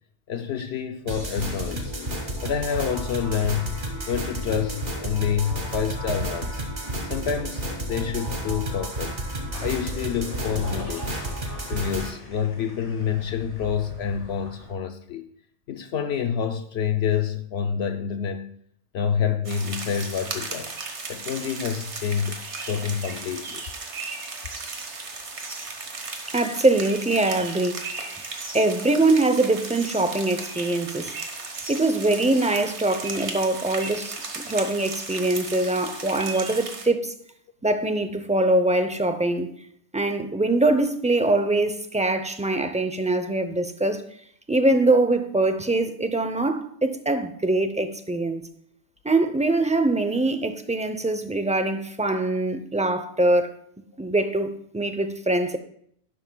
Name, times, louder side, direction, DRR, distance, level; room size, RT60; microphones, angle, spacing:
voice 1, 0.3-1.9 2.4-6.6 7.0-9.2 9.6-11.1 11.7-15.3 15.7-18.5 18.9-20.7 21.1-23.7 54.0-54.1, left 7 dB, 70° left, 0.8 m, -28 dB
sound 1, 1.1-12.1, right 1 dB, 45° right, 2.0 m, -31 dB
sound 2, 9.5-14.7, left 1 dB, 30° left, 2.0 m, -42 dB
sound 3, 19.4-36.9, right 3 dB, 70° right, 1.6 m, -35 dB
voice 2, 26.3-27.9 28.5-31.1 31.7-37.1 37.6-39.5 39.9-44.1 44.5-48.5 49.0-53.6 54.0-55.6, right 2 dB, 10° right, 0.4 m, -23 dB
11.5 x 11.0 x 2.3 m
omnidirectional pair, 1.2 m